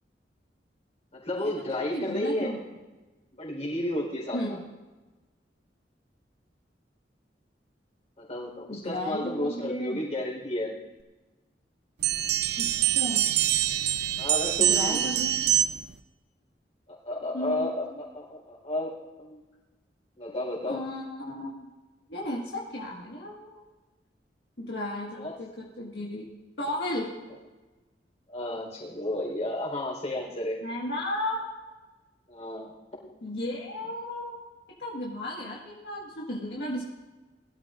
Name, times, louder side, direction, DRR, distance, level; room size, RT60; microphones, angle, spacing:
voice 1, 1.1-2.5 3.3-4.6 8.2-10.7 14.2-15.1 17.0-17.8 18.1-18.9 19.2-19.4 20.2-20.8 25.2-25.4 26.7-26.8 28.3-30.6 32.3-33.1, left 1 dB, 40° left, -2 dB, 4.2 m, -32 dB
voice 2, 1.9-2.6 4.3-4.6 8.7-10.0 12.6-13.3 14.6-15.5 17.3-17.8 20.7-21.6 22.1-23.6 24.6-26.3 26.6-27.1 30.6-31.5 33.2-34.4 34.8-36.8, left 1 dB, 70° left, -4 dB, 1.8 m, -34 dB
sound 1, 12.0-15.9, right 12 dB, 65° right, 0.6 m, -25 dB
22.0 x 12.5 x 2.5 m, 1.2 s
head